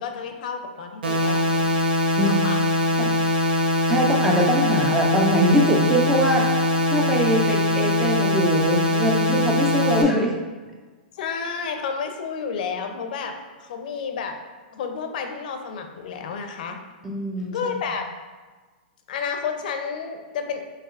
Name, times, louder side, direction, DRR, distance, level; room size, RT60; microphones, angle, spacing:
voice 1, 0.0-1.7 2.2-2.6 11.2-13.3 13.6-14.3 14.7-16.8 17.5-18.1 19.1-20.6, left 6 dB, 55° left, 5 dB, 0.5 m, -30 dB
sound 1, 1.0-10.0, left 1 dB, 80° right, 0.8 m, -22 dB
voice 2, 3.9-6.5 6.9-10.4 17.0-17.7, equal, 5° right, -1 dB, 0.4 m, -22 dB
5.7 x 3.0 x 2.4 m, 1.3 s
hypercardioid pair, 160°, 5 cm